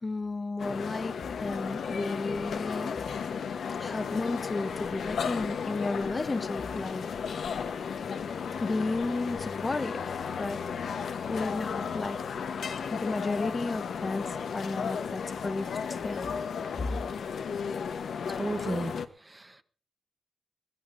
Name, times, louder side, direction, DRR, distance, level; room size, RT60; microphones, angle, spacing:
voice 1, 0.0-3.0 3.7-7.7 8.6-10.7 11.3-12.2 12.9-16.3 16.8-16.9, left 3 dB, 25° left, 9 dB, 0.7 m, -33 dB
sound 1, 0.6-19.1, left 6 dB, 70° left, 1.0 m, -34 dB
voice 2, 18.3-18.9 19.3-19.6, right 2 dB, 15° right, 9 dB, 0.9 m, -33 dB
23.0 x 17.0 x 2.6 m, 0.41 s
wide cardioid pair, 150°, 0 cm